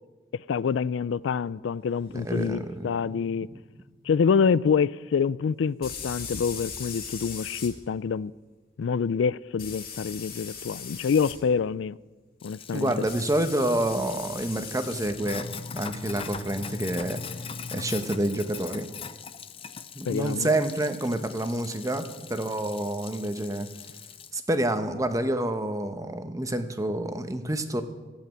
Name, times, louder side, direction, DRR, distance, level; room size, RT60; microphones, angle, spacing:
voice 1, 0.5-3.5 4.0-8.3 8.8-12.0 12.4-12.9 20.1-20.5, left 6 dB, 90° left, 0.4 m, -26 dB
voice 2, 2.1-3.3 12.7-15.5 15.8-17.2 17.7-18.9 19.9-23.7 24.3-27.8, right 1 dB, 20° right, 1.0 m, -28 dB
sound 1, 2.4-2.5 5.8-7.7 9.6-11.4 13.1-15.1, left 6 dB, 55° left, 2.6 m, -39 dB
Sink (filling or washing), 12.4-24.3, left 6 dB, 30° left, 0.6 m, -41 dB
15.5 x 8.6 x 9.1 m
head